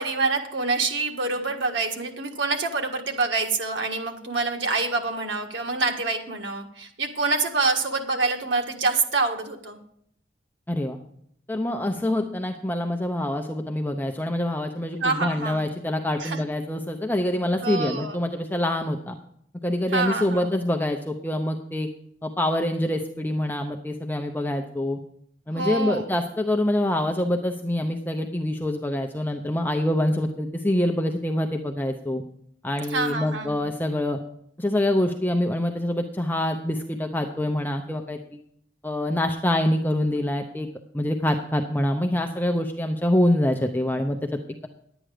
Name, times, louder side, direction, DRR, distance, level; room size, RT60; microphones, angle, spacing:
voice 1, 0.0-9.8 15.0-15.7 16.2-16.4 17.6-18.2 19.9-20.5 25.5-26.1 32.9-33.6, right 3 dB, 90° right, 3 dB, 1.5 m, -26 dB
voice 2, 10.7-11.0 11.5-19.2 19.6-21.9 22.2-25.0 25.5-32.2 32.6-34.2 34.6-38.2 38.8-40.7 40.9-44.2, left 1 dB, 10° left, 4 dB, 0.6 m, -25 dB
11.0 x 9.0 x 4.9 m, 0.69 s
head